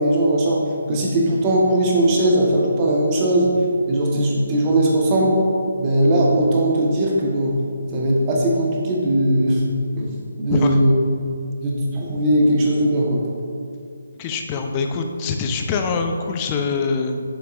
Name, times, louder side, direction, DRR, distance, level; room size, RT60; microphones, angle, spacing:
voice 1, 0.0-3.5 3.9-5.4 5.8-7.6 7.9-9.6 10.0-10.1 10.4-10.9 11.6-13.2, right 1 dB, 25° right, -3 dB, 1.1 m, -19 dB
voice 2, 10.5-10.8 14.2-17.2, left 4 dB, 25° left, 4 dB, 0.5 m, -24 dB
6.6 x 6.4 x 2.4 m, 2.3 s
figure-of-eight pair, 150°, 0 cm